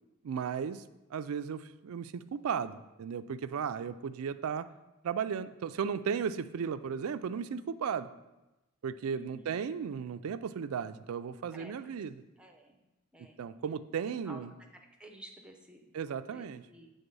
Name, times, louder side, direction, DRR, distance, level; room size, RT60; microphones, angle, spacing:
voice 1, 0.2-0.8 1.1-4.7 5.0-8.1 8.8-12.1 13.2-14.5 15.9-16.6, right 7 dB, 80° right, 12 dB, 0.4 m, -35 dB
voice 2, 9.1-9.6 11.5-12.0 12.4-12.8 13.1-13.4 14.2-14.4 15.0-16.9, right 1 dB, 5° right, 2 dB, 0.7 m, -52 dB
8.1 x 3.8 x 5.3 m, 1.0 s
head